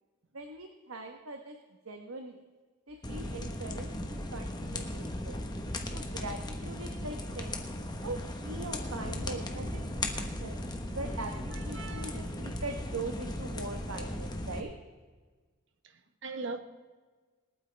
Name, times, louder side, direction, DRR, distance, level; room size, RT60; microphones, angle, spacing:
voice 1, 0.3-1.6 1.8-2.3 2.9-5.4 5.9-7.6 8.0-10.6 10.9-14.7, right 2 dB, 80° right, 1.2 m, -41 dB
sound 1, 3.0-14.6, left 1 dB, 20° left, 1.1 m, -37 dB
voice 2, 11.5-12.2 16.2-16.6, right 3 dB, 60° right, 1.1 m, -39 dB
27.5 x 9.2 x 3.4 m
head